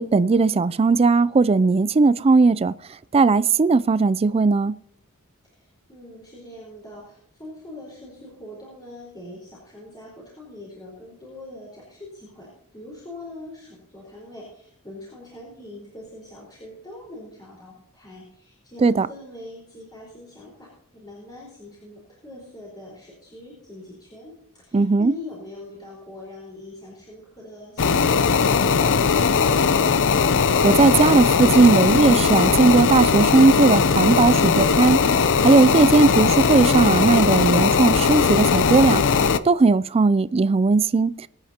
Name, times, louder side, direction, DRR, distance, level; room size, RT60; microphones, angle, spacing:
voice 1, 0.0-2.7 3.1-4.8 18.8-19.1 24.7-25.1 30.6-41.1, right 3 dB, 25° right, 0.4 m, -18 dB
voice 2, 5.5-28.3, left 1 dB, 20° left, 4.6 m, -42 dB
sound 1, 27.8-39.4, left 5 dB, 60° left, 0.6 m, -19 dB
23.5 x 9.7 x 2.9 m
head